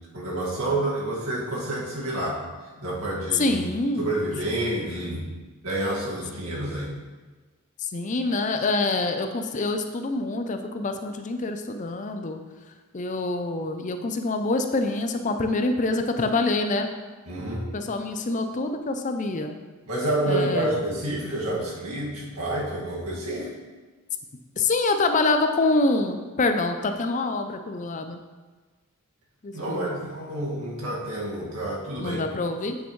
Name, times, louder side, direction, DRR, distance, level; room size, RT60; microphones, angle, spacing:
voice 1, 0.1-2.4 2.8-3.6 4.0-5.2 5.6-6.9 17.3-17.7 19.9-23.5 29.5-32.2, right 1 dB, 75° right, -4 dB, 2.0 m, -28 dB
voice 2, 3.3-4.1 4.5-4.7 7.8-12.4 12.9-16.9 17.7-19.6 20.3-20.8 24.6-28.2 29.4-30.0 32.0-32.8, left 2 dB, 35° left, 7 dB, 0.5 m, -26 dB
8.6 x 6.7 x 3.2 m, 1.3 s
head